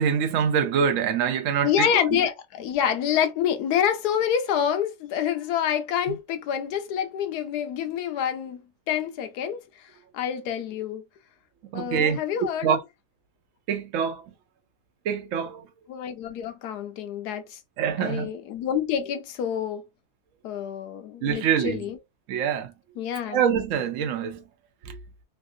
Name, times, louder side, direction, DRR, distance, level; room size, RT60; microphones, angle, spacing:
voice 1, 0.0-2.1 6.1-6.2 11.7-12.2 12.6-12.8 13.7-14.2 15.1-15.6 17.8-18.4 21.2-21.9 22.3-22.7 23.3-24.4 24.9-25.0, right 7 dB, 70° right, 0.8 m, -25 dB
voice 2, 1.6-8.6 8.9-9.6 10.1-11.0 11.7-12.8 15.9-17.6 18.0-19.8 20.4-22.0 23.0-23.4, left 9 dB, 75° left, 1.1 m, -27 dB
3.2 x 2.4 x 2.6 m
omnidirectional pair, 1.7 m